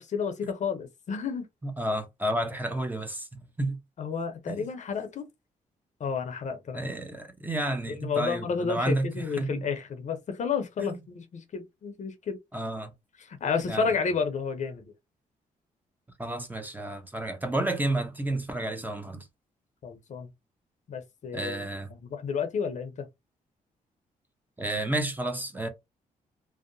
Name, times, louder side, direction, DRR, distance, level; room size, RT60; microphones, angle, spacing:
voice 1, 0.0-1.4 4.0-5.2 6.0-6.9 7.9-12.4 13.2-14.8 19.8-20.3 20.9-21.7 22.0-23.1, left 5 dB, 55° left, 0.6 m, -31 dB
voice 2, 1.6-3.8 4.5-4.7 6.7-9.7 10.8-11.0 12.5-12.9 13.7-13.9 16.2-19.3 21.3-21.9 24.6-25.7, right 1 dB, 10° right, 0.6 m, -31 dB
2.7 x 2.0 x 2.6 m
cardioid pair, 75°, 15 cm